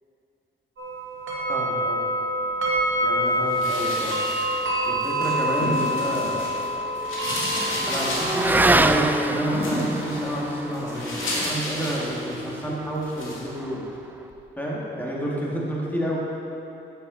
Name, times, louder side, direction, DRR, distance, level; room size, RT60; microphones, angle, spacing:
sound 1, 0.8-11.3, equal, 70° right, 1.8 m, -27 dB
voice 1, 1.5-2.0 3.0-4.2 4.9-6.5 7.9-13.8 14.6-16.2, equal, 10° left, -5 dB, 2.1 m, -29 dB
sound 2, 3.5-6.7 6.9-12.6 13.0-13.4, left 1 dB, 75° left, 2.3 m, -32 dB
Motorcycle / Accelerating revving vroom, 5.6-14.4, right 2 dB, 10° right, 0.3 m, -28 dB
9.5 x 7.7 x 4.0 m, 2.8 s
cardioid pair, 80°, 21 cm